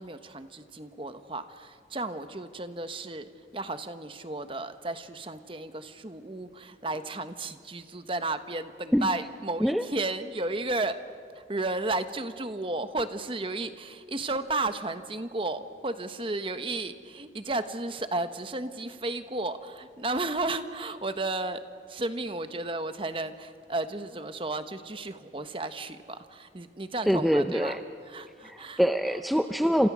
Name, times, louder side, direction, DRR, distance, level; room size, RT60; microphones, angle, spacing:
voice 1, 0.0-11.0 11.3-21.6 21.9-27.8 28.1-28.8, right 2 dB, 30° right, 10 dB, 1.1 m, -33 dB
voice 2, 27.1-27.8 28.4-29.9, equal, ahead, 7 dB, 0.6 m, -24 dB
30.0 x 27.5 x 6.2 m, 2.2 s
head